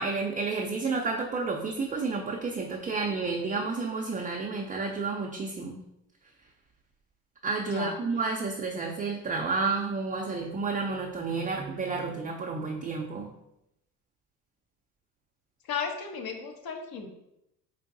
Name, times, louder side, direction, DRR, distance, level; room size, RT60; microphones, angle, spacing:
voice 1, 0.0-5.8 7.4-13.3, right 4 dB, 20° right, 0 dB, 0.4 m, -31 dB
voice 2, 7.7-8.0 15.7-17.1, left 6 dB, 55° left, 4 dB, 0.8 m, -34 dB
4.6 x 2.5 x 2.6 m, 0.85 s
supercardioid pair, 75°, 44 cm